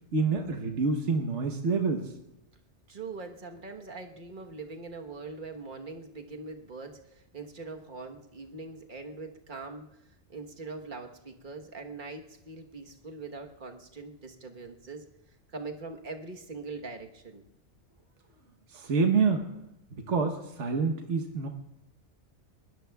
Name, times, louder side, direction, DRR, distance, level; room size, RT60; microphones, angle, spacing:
voice 1, 0.1-2.1 18.7-19.4 20.1-21.5, right 4 dB, 80° right, 3 dB, 1.4 m, -27 dB
voice 2, 2.9-7.0 7.3-9.9 10.3-15.0 15.5-17.4, right 3 dB, 45° right, 3 dB, 1.4 m, -42 dB
25.5 x 20.5 x 2.3 m, 0.88 s
omnidirectional pair, 1.2 m